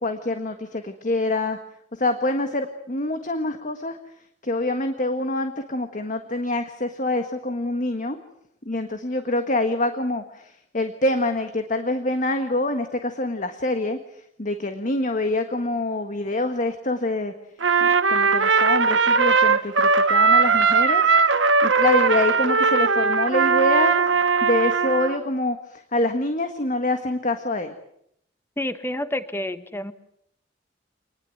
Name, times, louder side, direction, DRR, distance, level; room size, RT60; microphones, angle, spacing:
voice 1, 0.0-1.6 1.9-4.0 4.4-8.2 8.6-17.3 17.8-21.1 21.6-27.7, left 2 dB, 45° left, 7 dB, 1.6 m, -26 dB
Trumpet, 17.6-25.2, right 5 dB, 90° right, 1.5 m, -19 dB
voice 2, 28.6-29.9, left 1 dB, 15° left, 11 dB, 1.4 m, -29 dB
26.0 x 20.5 x 7.9 m, 0.73 s
head